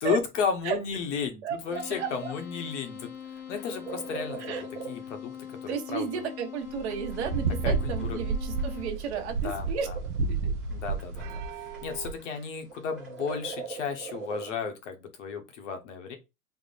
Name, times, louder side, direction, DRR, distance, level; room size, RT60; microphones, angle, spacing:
voice 1, 0.0-3.1 3.5-6.3 7.6-7.7 8.1-8.2 9.4-10.0 10.7-11.4 11.8-16.2, left 6 dB, 50° left, 0.9 m, -33 dB
voice 2, 1.4-2.3 4.4-4.6 5.7-9.9 10.3-10.5, right 7 dB, 45° right, 0.8 m, -33 dB
sound 1, 1.6-14.5, right 6 dB, ahead, 0.5 m, -44 dB
sound 2, 1.7-8.9, left 9 dB, 80° left, 1.7 m, -42 dB
sound 3, 6.7-12.1, right 4 dB, 75° right, 0.7 m, -31 dB
3.5 x 2.0 x 3.9 m
supercardioid pair, 175°, 46 cm